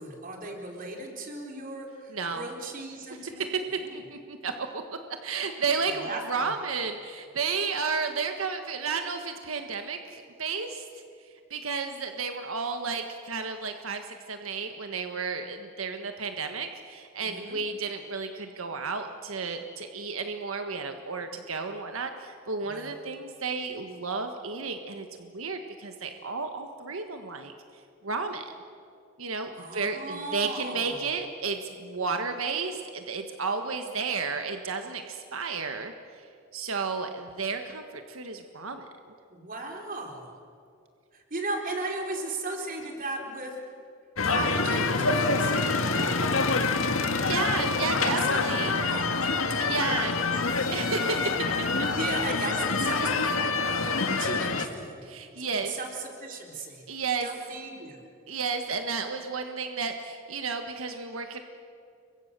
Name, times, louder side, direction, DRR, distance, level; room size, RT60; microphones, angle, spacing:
voice 1, 0.0-3.5 3.8-4.0 5.9-6.6 17.2-17.6 22.6-22.9 29.6-31.1 39.3-40.3 41.1-43.6 44.2-45.6 47.2-47.7 48.0-49.3 49.6-50.2 51.5-51.6 51.9-55.0 55.4-56.8 57.2-58.0, right 2 dB, 40° right, 1 dB, 4.2 m, -37 dB
voice 2, 2.1-2.5 3.4-10.9 11.5-27.5 28.0-28.5 29.2-36.3 36.5-38.8 47.2-48.8 49.6-50.4 50.7-51.9 55.0-55.8 56.9-57.3 58.3-61.4, right 4 dB, 90° right, 6 dB, 1.5 m, -32 dB
sound 1, 44.2-54.7, left 4 dB, 85° left, 1.8 m, -26 dB
30.0 x 23.5 x 6.8 m, 2.4 s
head